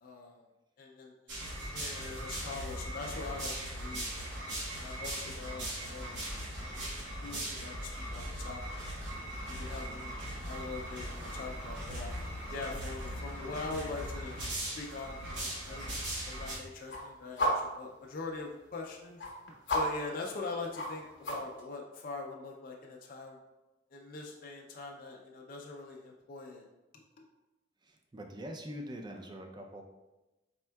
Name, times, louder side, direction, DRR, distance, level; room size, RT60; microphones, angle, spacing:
voice 1, 0.0-0.4 0.8-4.1 4.4-6.2 6.6-6.9 7.2-8.6 9.5-12.1 12.5-19.2 19.7-23.4 23.9-26.7 27.2-27.3, left 3 dB, 50° left, -1 dB, 0.4 m, -43 dB
sound 1, 1.3-16.6, right 1 dB, 75° right, 1.0 m, -39 dB
sound 2, 9.1-14.4, equal, 55° right, 1.3 m, -51 dB
sound 3, 10.4-21.6, equal, 65° left, 0.8 m, -40 dB
voice 2, 27.8-29.8, equal, 25° right, 3 dB, 0.4 m, -43 dB
4.3 x 3.5 x 2.2 m, 1.0 s
head